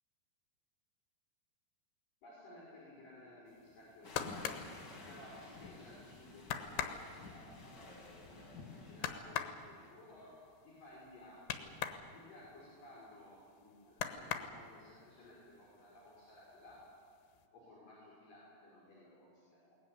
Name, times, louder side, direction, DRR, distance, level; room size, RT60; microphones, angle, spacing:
voice 1, 2.2-4.7 5.1-11.7 12.1-16.8 17.5-19.8, left 1 dB, 50° left, -6 dB, 6.8 m, -57 dB
sound 1, 3.7-5.7 6.1-6.2 6.4-12.1 12.4-13.5 13.9-15.0 15.4-16.0 16.3-17.0 17.4-17.5, left 9 dB, 90° left, 3.5 m, -42 dB
sound 2, 4.0-9.2, left 3 dB, 30° left, 2.8 m, -52 dB
21.5 x 19.5 x 9.7 m, 2.4 s
omnidirectional pair, 5.0 m